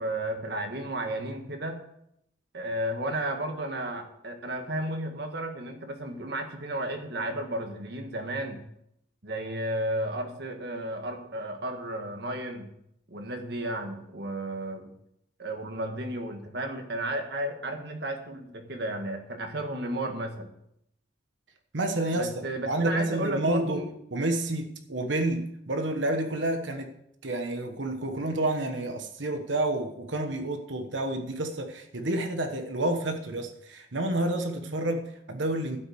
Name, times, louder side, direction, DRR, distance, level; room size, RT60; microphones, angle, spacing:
voice 1, 0.0-1.8 2.5-8.6 9.2-12.7 13.1-14.9 15.4-20.5 22.2-23.9 34.7-34.8, right 1 dB, 55° right, 5 dB, 1.7 m, -33 dB
voice 2, 21.7-22.3 22.7-26.9 27.2-35.8, right 1 dB, 75° right, 6 dB, 1.2 m, -29 dB
12.0 x 6.6 x 7.8 m, 0.77 s
head